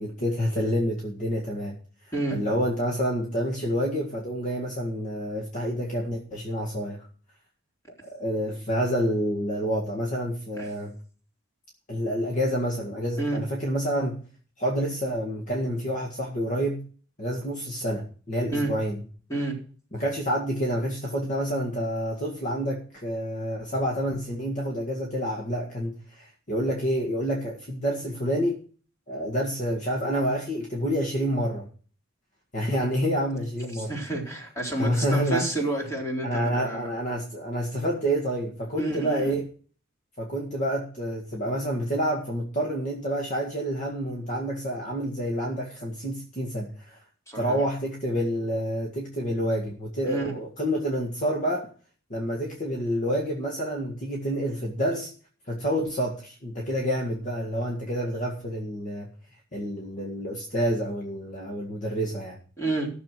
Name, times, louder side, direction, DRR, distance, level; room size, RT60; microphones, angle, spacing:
voice 1, 0.0-1.8 2.3-7.1 8.1-10.9 11.9-14.2 14.6-16.8 17.2-19.0 19.9-28.6 29.1-31.7 32.5-33.9 34.8-35.5 36.2-39.5 40.2-47.0 47.4-51.7 52.1-55.1 55.5-59.1 59.5-62.4, equal, 40° left, -1 dB, 1.9 m, -28 dB
voice 2, 33.7-36.9 38.8-39.3 47.3-47.6 50.0-50.3 62.6-62.9, right 2 dB, 15° left, -1 dB, 3.7 m, -29 dB
14.0 x 6.9 x 6.1 m, 0.42 s
head